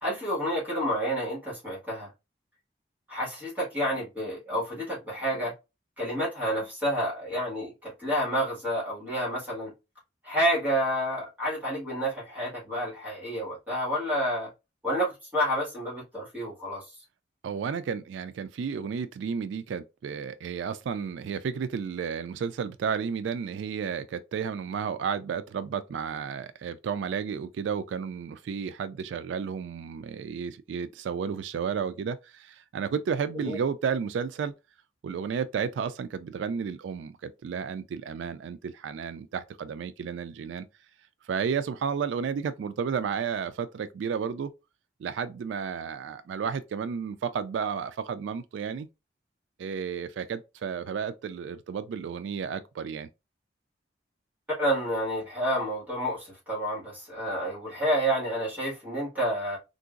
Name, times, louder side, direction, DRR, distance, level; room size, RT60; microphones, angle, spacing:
voice 1, 0.0-2.1 3.1-5.5 6.0-9.7 10.2-14.5 14.8-16.8 33.3-33.6 54.6-59.6, equal, 10° right, 1.7 m, -29 dB
voice 2, 17.4-34.5 35.0-40.7 41.2-44.5 45.0-48.9 49.6-53.1, right 6 dB, 85° right, 0.3 m, -32 dB
3.7 x 2.6 x 2.4 m
head